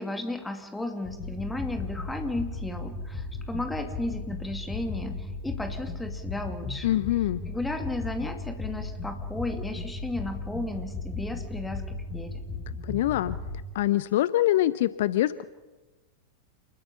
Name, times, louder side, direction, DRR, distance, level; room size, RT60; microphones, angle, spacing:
voice 1, 0.0-7.0 7.5-12.4, left 2 dB, 10° left, 5 dB, 2.6 m, -34 dB
sound 1, 1.0-13.6, left 3 dB, 35° left, 7.0 m, -36 dB
voice 2, 6.8-7.4 12.8-13.4 13.7-15.4, left 14 dB, 55° left, 17 dB, 0.6 m, -24 dB
28.5 x 21.0 x 5.7 m, 1.2 s
figure-of-eight pair, 90°, 0 cm